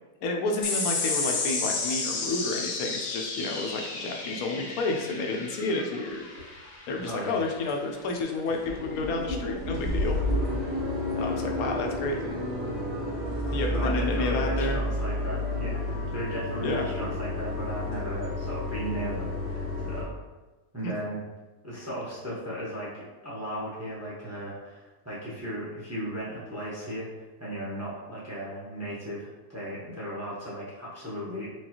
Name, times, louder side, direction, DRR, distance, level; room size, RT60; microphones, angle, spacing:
voice 1, 0.2-6.3 6.9-10.2 11.2-12.4 13.5-14.8 16.6-16.9 20.8-20.9, left 3 dB, 80° left, 2 dB, 1.0 m, -30 dB
sound 1, 0.6-7.4, left 4 dB, 60° left, 0.8 m, -32 dB
sound 2, 6.4-6.5 7.0-7.3 7.7-7.8 8.1-8.2 8.4-20.0, left 1 dB, 65° right, 1.8 m, -31 dB
voice 2, 7.1-7.4 13.4-20.2 20.7-21.2 21.6-27.1 27.4-31.5, right 1 dB, 15° right, -8 dB, 0.7 m, -36 dB
4.6 x 2.3 x 2.8 m, 1.2 s
omnidirectional pair, 1.5 m